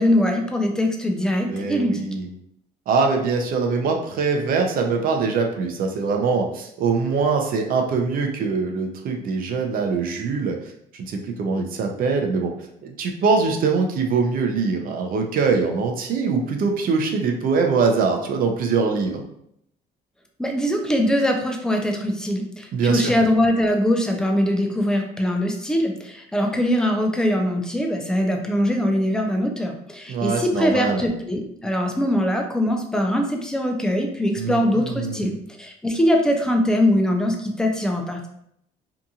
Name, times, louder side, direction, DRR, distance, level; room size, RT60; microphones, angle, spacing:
voice 1, 0.0-2.0 20.4-38.3, left 1 dB, 5° left, 2 dB, 0.4 m, -22 dB
voice 2, 1.5-2.3 2.9-10.6 10.9-12.5 12.8-19.2 22.7-23.1 30.1-31.0 34.4-35.3, right 4 dB, 60° right, 3 dB, 0.5 m, -23 dB
2.8 x 2.5 x 2.4 m, 0.73 s
cardioid pair, 110°, 17 cm